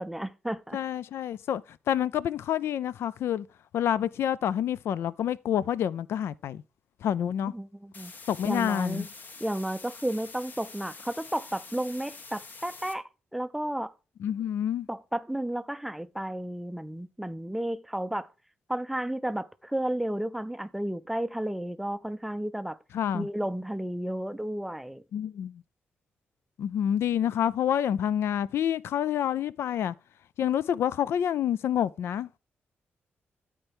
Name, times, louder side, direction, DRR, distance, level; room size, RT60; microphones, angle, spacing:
voice 1, 0.0-0.8 7.4-8.1 8.4-9.0 9.4-13.9 14.9-18.3 18.7-22.8 23.1-25.0, right 1 dB, 5° right, 0.4 m, -32 dB
voice 2, 0.7-1.6 1.9-3.5 3.7-6.6 7.0-7.5 8.3-9.1 14.2-14.9 22.9-23.3 25.1-25.6 26.6-29.9 30.4-32.3, left 9 dB, 80° left, 0.3 m, -28 dB
sound 1, 7.9-12.9, left 4 dB, 45° left, 1.2 m, -46 dB
13.0 x 4.5 x 3.4 m
cardioid pair, 105°, 4 cm